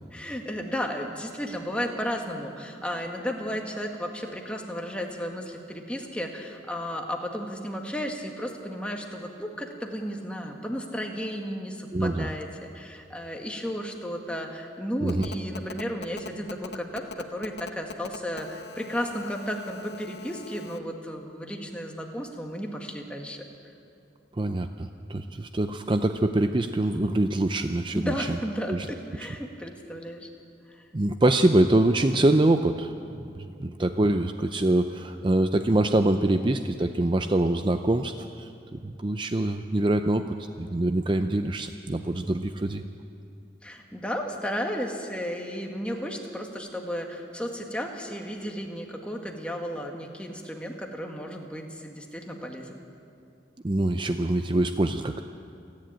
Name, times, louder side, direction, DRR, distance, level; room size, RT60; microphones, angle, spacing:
voice 1, 0.1-23.4 27.9-30.3 43.6-52.8, equal, 5° left, 2 dB, 1.8 m, -34 dB
voice 2, 11.9-12.3 15.0-15.3 24.4-28.4 28.7-28.9 30.9-40.2 40.6-42.8 53.6-55.3, right 1 dB, 25° right, 8 dB, 0.5 m, -24 dB
Telephone, 15.1-20.8, left 4 dB, 70° left, 0.9 m, -41 dB
28.5 x 10.5 x 9.0 m, 2.5 s
head